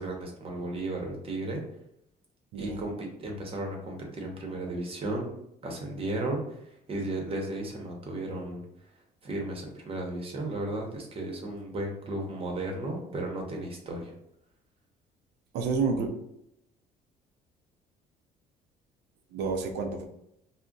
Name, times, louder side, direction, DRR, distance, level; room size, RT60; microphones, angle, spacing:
voice 1, 0.0-1.6 2.5-5.3 5.6-8.6 9.2-14.1, right 2 dB, 35° right, 1 dB, 0.8 m, -34 dB
voice 2, 2.5-2.8 15.5-16.1 19.3-20.1, right 4 dB, 85° right, 3 dB, 0.5 m, -29 dB
2.4 x 2.1 x 3.8 m, 0.79 s
cardioid pair, 110°, 17 cm